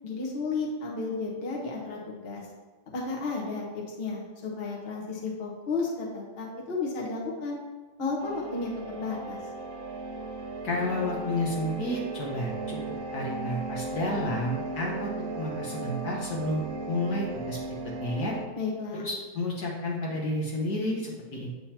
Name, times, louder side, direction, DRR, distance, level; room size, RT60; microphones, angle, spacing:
voice 1, 0.0-2.4 2.9-7.6 8.0-9.4 18.5-19.0, left 3 dB, 35° left, -3 dB, 1.2 m, -33 dB
sound 1, 8.2-18.4, right 3 dB, 65° right, 0.9 m, -36 dB
voice 2, 10.6-12.8 13.1-15.1 15.4-16.6 16.9-17.7 18.0-18.3 18.9-21.5, left 1 dB, 60° left, -4 dB, 1.4 m, -31 dB
8.5 x 4.4 x 2.9 m, 1.3 s
omnidirectional pair, 2.1 m